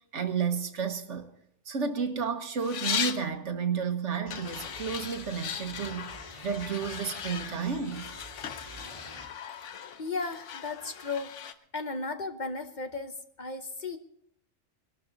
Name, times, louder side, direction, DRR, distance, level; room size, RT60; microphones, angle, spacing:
voice 1, 0.1-1.3 1.7-6.1 6.4-8.1, right 6 dB, 75° right, 1.6 m, -31 dB
sound 1, 2.6-3.3 4.3-11.5, left 8 dB, 75° left, 1.1 m, -38 dB
sound 2, 4.3-9.3, equal, 25° left, 3.0 m, -48 dB
voice 2, 10.0-11.3 11.7-14.0, left 3 dB, 40° left, 1.0 m, -35 dB
20.0 x 12.0 x 3.9 m
omnidirectional pair, 1.2 m